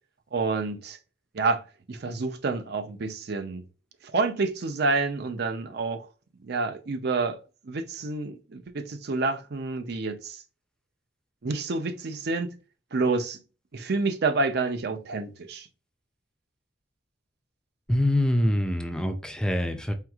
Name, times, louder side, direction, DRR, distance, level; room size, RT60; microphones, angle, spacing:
voice 1, 0.3-1.0 1.3-1.6 1.9-3.6 4.1-6.1 6.4-7.4 7.6-10.4 11.4-12.5 12.9-13.4 13.7-15.7, right 3 dB, 60° right, 0.6 m, -28 dB
voice 2, 17.9-19.9, left 1 dB, 5° left, 0.4 m, -25 dB
4.6 x 3.5 x 2.4 m
head